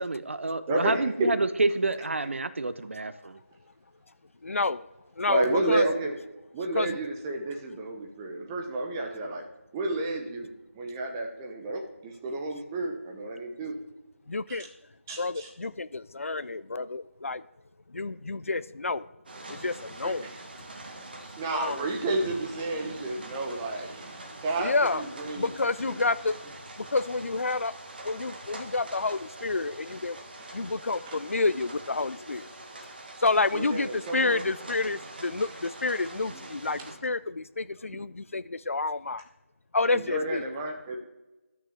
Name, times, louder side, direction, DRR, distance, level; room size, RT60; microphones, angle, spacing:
voice 1, 0.0-3.4, right 3 dB, 55° right, 15 dB, 0.7 m, -28 dB
voice 2, 0.7-1.3 5.3-6.2 6.5-9.4 9.7-10.5 10.7-13.8 14.5-14.7 15.1-15.5 20.0-20.4 21.4-26.0 31.0-31.2 33.5-34.4 36.3-36.5 36.8-36.9 37.9-38.0 39.9-41.0, right 2 dB, 10° right, 2 dB, 1.0 m, -31 dB
voice 3, 4.4-4.9 5.2-5.8 6.7-6.9 14.3-14.7 15.2-17.4 17.9-19.1 19.5-20.3 21.5-21.8 24.6-25.0 25.4-26.3 26.8-27.7 28.0-30.2 30.5-32.5 33.2-39.2 39.7-40.4, left 3 dB, 70° left, 16 dB, 0.5 m, -29 dB
sound 1, 19.3-37.0, right 2 dB, 40° right, 1.8 m, -44 dB
11.5 x 6.3 x 7.0 m, 1.1 s
figure-of-eight pair, 165°, 8 cm